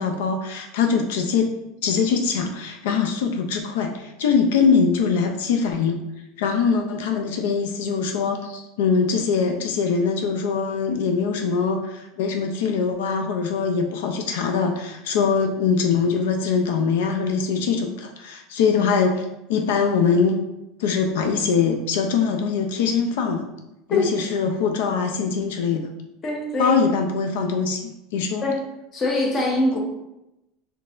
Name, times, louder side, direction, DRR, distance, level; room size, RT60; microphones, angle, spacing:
voice 1, 0.0-1.5 1.8-6.0 6.4-19.2 19.5-20.4 20.8-23.4 23.9-25.9 26.6-28.4, left 5 dB, 85° left, 5 dB, 0.4 m, -22 dB
voice 2, 26.2-26.8 28.4-28.6 28.9-29.8, left 2 dB, 25° left, 0 dB, 0.8 m, -22 dB
4.1 x 3.2 x 2.5 m, 0.90 s
supercardioid pair, 155°, 0 cm